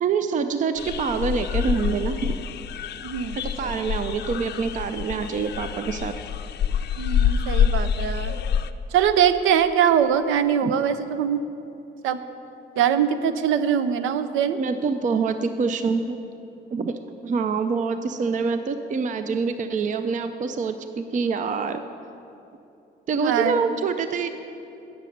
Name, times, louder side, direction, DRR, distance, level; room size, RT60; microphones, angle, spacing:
voice 1, 0.0-2.3 3.4-6.1 10.6-10.7 14.6-16.2 16.7-21.8 23.1-24.3, right 5 dB, 40° right, 9 dB, 0.5 m, -26 dB
sound 1, 0.8-8.7, left 8 dB, 55° left, 0.5 m, -26 dB
voice 2, 3.0-3.7 7.0-8.4 8.9-11.4 12.0-12.2 12.8-14.6 23.2-23.7, right 8 dB, 90° right, 11 dB, 0.6 m, -22 dB
9.8 x 6.7 x 6.5 m, 2.8 s
cardioid pair, 90°, 20 cm